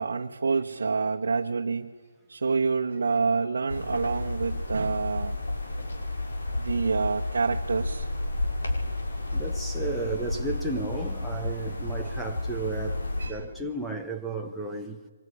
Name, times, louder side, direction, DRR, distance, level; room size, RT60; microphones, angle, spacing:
voice 1, 0.0-1.9 2.3-5.4 6.5-8.1 12.0-12.1 13.2-13.4, right 4 dB, 70° right, 1.2 m, -27 dB
sound 1, 3.7-13.3, left 2 dB, 75° left, 5.8 m, -31 dB
voice 2, 9.3-15.0, right 3 dB, ahead, 0.8 m, -33 dB
24.5 x 21.0 x 9.8 m
hypercardioid pair, 175°, 0 cm